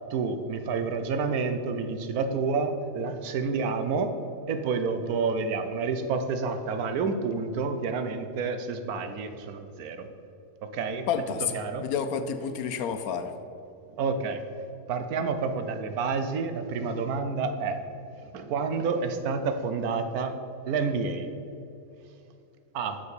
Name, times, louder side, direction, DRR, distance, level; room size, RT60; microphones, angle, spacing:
voice 1, 0.1-4.1 4.5-10.1 10.6-11.1 11.5-11.9 14.0-14.4 14.9-17.8 18.3-20.4 20.7-21.3 22.7-23.0, right 4 dB, 80° right, 8 dB, 1.2 m, -29 dB
voice 2, 11.1-13.3, left 7 dB, 80° left, 9 dB, 1.1 m, -30 dB
6.9 x 6.9 x 6.6 m, 2.7 s
omnidirectional pair, 1.5 m